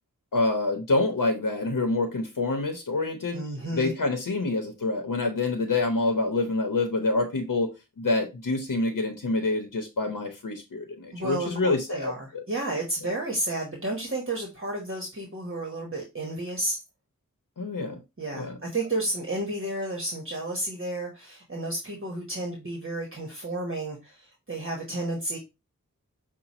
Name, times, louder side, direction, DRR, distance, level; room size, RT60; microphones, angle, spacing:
voice 1, 0.3-3.4 3.7-12.4 17.6-18.0 18.3-18.6, left 2 dB, 75° left, 0.8 m, -27 dB
voice 2, 3.3-3.9 11.1-16.8 18.2-25.4, right 1 dB, 40° right, 1.1 m, -32 dB
5.9 x 2.2 x 4.1 m
wide cardioid pair, 50°, 32 cm